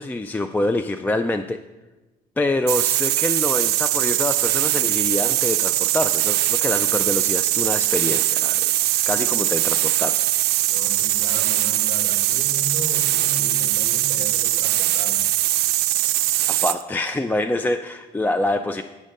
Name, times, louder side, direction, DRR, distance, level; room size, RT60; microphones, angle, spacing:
voice 1, 0.0-1.6 2.4-10.2 16.5-18.8, left 2 dB, 10° left, 9 dB, 0.3 m, -25 dB
sound 1, 2.7-16.8, right 15 dB, 75° right, 0.4 m, -21 dB
voice 2, 10.7-15.2, left 2 dB, 45° left, 1 dB, 2.4 m, -36 dB
9.5 x 5.2 x 6.3 m, 1.1 s
cardioid pair, 110°, 17 cm